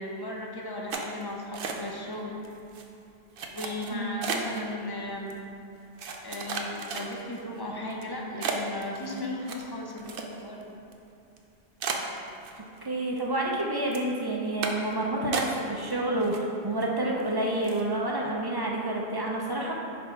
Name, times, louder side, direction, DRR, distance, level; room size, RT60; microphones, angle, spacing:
voice 1, 0.0-2.4 3.4-5.4 6.2-10.7, left 1 dB, 30° left, -1 dB, 0.5 m, -36 dB
sound 1, 0.9-2.1 2.4-2.8 3.4-4.6 5.3-5.4 6.0-7.4 7.9-8.0 8.4-10.6 10.9-11.0 11.4-11.5 11.8-12.9 13.2-13.6 13.9-14.1 14.6-14.9 15.3-15.9 16.2-16.8 17.2-17.3 17.6-17.9, right 5 dB, 60° right, 0.7 m, -34 dB
voice 2, 3.9-4.2 12.8-19.7, right 1 dB, 35° right, -2 dB, 0.4 m, -29 dB
4.3 x 4.2 x 5.6 m, 2.7 s
omnidirectional pair, 1.1 m